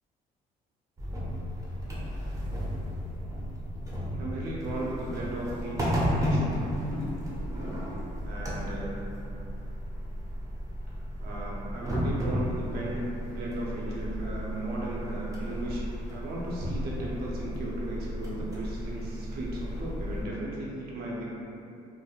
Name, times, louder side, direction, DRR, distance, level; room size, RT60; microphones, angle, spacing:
sound 1, 1.0-20.2, equal, 20° right, 0.6 m, -33 dB
voice 1, 4.2-6.6 7.5-7.8 8.2-9.0 11.2-21.2, right 1 dB, 70° right, -5 dB, 0.6 m, -36 dB
3.2 x 2.0 x 2.3 m, 2.7 s
cardioid pair, 110°, 17 cm